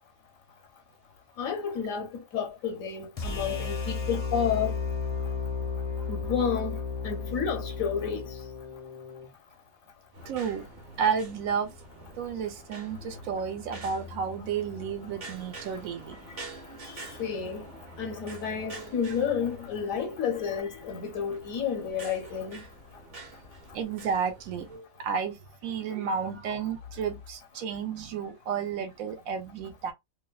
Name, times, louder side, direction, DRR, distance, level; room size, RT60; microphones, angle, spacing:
voice 1, 1.4-4.7 6.1-6.8 7.0-8.2 16.8-17.7 18.0-22.6, left 7 dB, 80° left, 1.0 m, -31 dB
sound 1, 3.2-9.3, left 5 dB, 45° left, 0.5 m, -33 dB
sound 2, 10.1-24.8, right 1 dB, 50° right, 1.1 m, -46 dB
voice 2, 10.2-10.7 11.0-11.7 12.2-16.2 23.7-29.9, right 6 dB, 80° right, 1.0 m, -32 dB
2.6 x 2.1 x 2.2 m
omnidirectional pair, 1.4 m